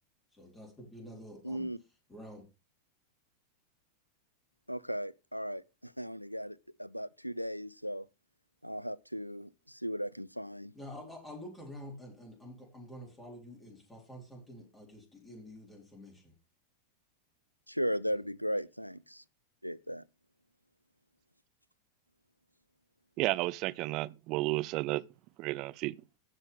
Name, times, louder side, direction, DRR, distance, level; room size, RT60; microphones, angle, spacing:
voice 1, 0.3-1.7 2.1-2.4 10.7-16.3 18.1-18.2, left 1 dB, 15° left, 4.0 m, -48 dB
voice 2, 1.4-1.8 4.7-8.1 8.6-10.7 17.7-19.2 19.6-20.0, equal, 90° left, 0.4 m, -37 dB
voice 3, 23.2-25.0 25.4-25.9, right 20 dB, 40° right, 0.5 m, -32 dB
16.5 x 5.5 x 3.4 m
figure-of-eight pair, 90°, 0 cm